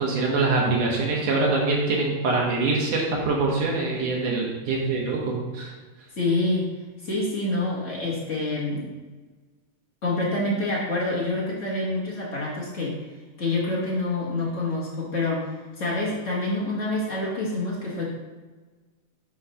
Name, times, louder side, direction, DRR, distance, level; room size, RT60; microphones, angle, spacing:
voice 1, 0.0-5.7, right 3 dB, 65° right, -3 dB, 2.3 m, -24 dB
voice 2, 6.2-6.7 7.0-8.9 10.0-13.0 13.4-18.1, left 2 dB, 70° left, -6 dB, 0.7 m, -27 dB
8.2 x 3.1 x 5.5 m, 1.3 s
omnidirectional pair, 3.3 m